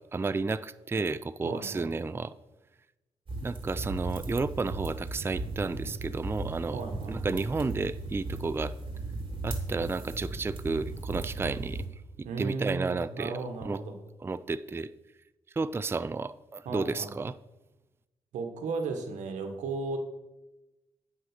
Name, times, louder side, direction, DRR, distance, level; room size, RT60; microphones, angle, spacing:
voice 1, 0.0-2.3 3.4-6.8 7.1-8.7 9.4-11.8 12.2-13.3 13.6-13.8 14.2-14.9 15.6-17.4, right 3 dB, 20° right, 13 dB, 0.4 m, -32 dB
voice 2, 1.4-1.8 6.7-7.2 12.2-13.9 16.6-17.1 18.3-20.0, right 4 dB, 90° right, 5 dB, 1.2 m, -35 dB
sound 1, 3.3-11.9, right 2 dB, 45° right, 2.8 m, -37 dB
7.8 x 5.7 x 6.5 m, 1.0 s
supercardioid pair, 55°, 12 cm